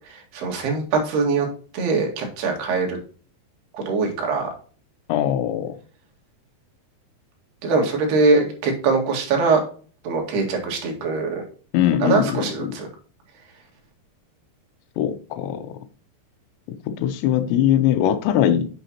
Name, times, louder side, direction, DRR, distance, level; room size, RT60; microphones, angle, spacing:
voice 1, 0.1-1.5 1.7-3.0 3.9-4.5 7.6-9.6 10.0-11.4 12.0-12.9, right 4 dB, 70° right, 1 dB, 3.8 m, -22 dB
voice 2, 5.1-5.7 11.7-12.7 15.0-15.6 17.0-18.7, left 10 dB, 85° left, 8 dB, 3.0 m, -21 dB
9.3 x 6.1 x 2.8 m, 0.41 s
omnidirectional pair, 5.1 m